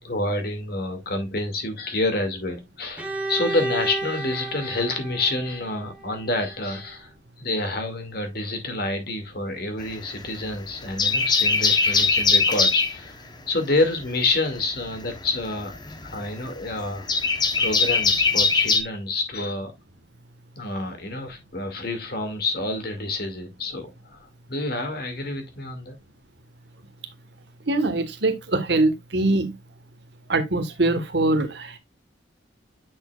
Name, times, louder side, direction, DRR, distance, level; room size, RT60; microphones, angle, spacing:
voice 1, 0.0-7.1 7.4-17.1 17.6-19.7 20.6-26.0, left 2 dB, 50° left, 2.2 m, -28 dB
Bowed string instrument, 3.0-6.8, right 2 dB, 5° right, 1.2 m, -32 dB
sound 1, 9.8-10.5 10.8-13.0 14.6-18.8, left 4 dB, 20° left, 0.9 m, -21 dB
voice 2, 27.7-29.5 30.3-31.8, right 2 dB, 60° right, 1.4 m, -23 dB
9.7 x 6.4 x 2.4 m
head